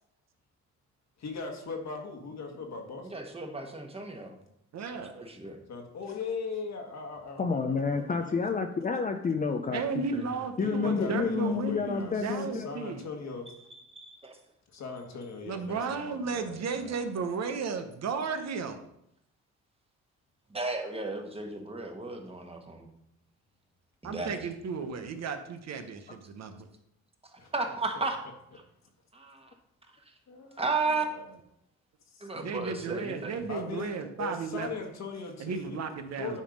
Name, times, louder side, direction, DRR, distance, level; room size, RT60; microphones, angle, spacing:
voice 1, 1.2-3.1 5.7-8.4 10.6-13.5 14.7-16.9 24.8-25.0 27.4-27.5 27.9-28.0 30.3-30.6 32.1-32.3 33.5-35.8 36.2-36.4, left 4 dB, 60° left, 3 dB, 1.7 m, -39 dB
voice 2, 3.1-4.4 5.1-5.6 10.1-10.3 13.5-14.4 20.5-22.9 24.0-24.5 27.5-28.2 28.5-28.6 29.1-29.5 30.1-30.2 30.6-31.0 32.2-33.4, right 3 dB, 20° right, 4 dB, 1.4 m, -34 dB
voice 3, 4.7-5.2 9.7-13.1 15.4-18.8 24.0-26.7 32.3-34.7 35.4-36.4, right 5 dB, 60° right, 7 dB, 1.0 m, -34 dB
voice 4, 7.4-9.8 10.6-12.7, left 5 dB, 25° left, 5 dB, 0.6 m, -29 dB
9.9 x 3.6 x 5.2 m, 0.77 s
cardioid pair, 90°, 30 cm